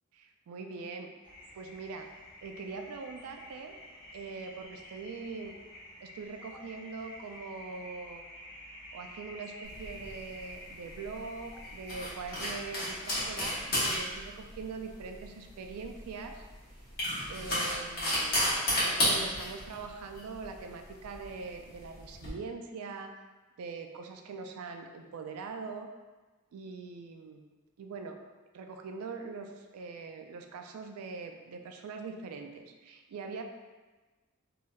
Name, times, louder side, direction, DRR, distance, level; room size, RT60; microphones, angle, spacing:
voice 1, 0.1-1.1 1.6-2.1 2.4-3.7 4.1-5.5 6.0-8.2 8.9-16.5 17.3-18.4 18.7-23.1 23.6-25.9 26.5-27.4 27.8-28.2 28.5-33.4, right 4 dB, 85° right, 5 dB, 0.3 m, -42 dB
sound 1, 1.2-13.8, left 1 dB, 20° right, 0.8 m, -50 dB
sound 2, 9.7-22.3, equal, 45° left, 1.1 m, -33 dB
3.2 x 2.6 x 2.3 m, 1.3 s
head